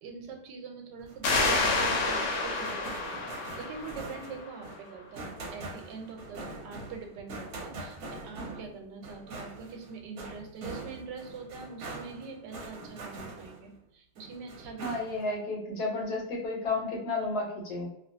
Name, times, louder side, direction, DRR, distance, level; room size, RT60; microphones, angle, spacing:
voice 1, 0.0-3.0 3.6-14.9, right 5 dB, 90° right, 3 dB, 1.3 m, -44 dB
sound 1, 1.0-13.8 14.1-15.3, right 2 dB, 65° right, 1.1 m, -43 dB
sound 2, 1.2-4.6, left 3 dB, 85° left, 1.3 m, -29 dB
voice 2, 14.8-17.9, left 3 dB, 65° left, -2 dB, 1.3 m, -32 dB
2.9 x 2.4 x 2.6 m, 0.81 s
omnidirectional pair, 1.9 m